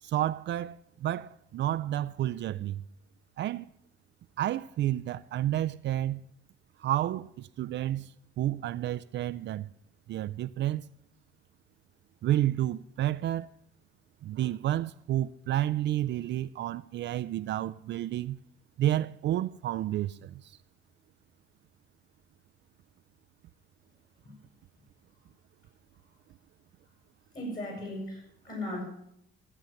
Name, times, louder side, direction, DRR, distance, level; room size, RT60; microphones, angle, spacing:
voice 1, 0.0-2.8 3.4-3.7 4.4-6.2 6.8-9.7 10.1-10.9 12.2-13.5 14.2-18.4 18.8-20.6, right 13 dB, 65° right, 0.4 m, -30 dB
voice 2, 27.3-28.8, left 1 dB, 45° left, 7.3 m, -37 dB
15.5 x 7.8 x 7.1 m
cardioid pair, 90°, 20 cm